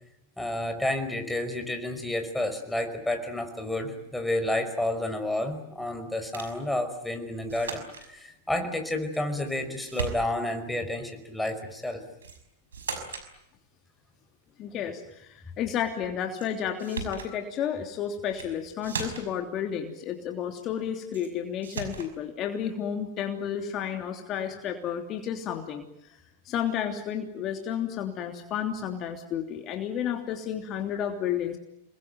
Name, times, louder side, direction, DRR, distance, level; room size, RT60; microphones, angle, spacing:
voice 1, 0.4-12.0, left 1 dB, 5° left, 5 dB, 5.4 m, -30 dB
sound 1, 6.3-6.6 7.5-8.1 9.1-9.6 9.9-10.6 12.2-12.4 12.7-13.3 16.4-16.5 16.8-17.3 18.2-18.5 18.8-19.4 21.1-21.3 21.6-22.1, right 5 dB, 80° right, 5.8 m, -37 dB
voice 2, 14.6-25.9 26.4-31.6, left 9 dB, 40° left, 5 dB, 3.1 m, -31 dB
28.0 x 22.0 x 9.3 m, 0.81 s
hypercardioid pair, 105°, 0 cm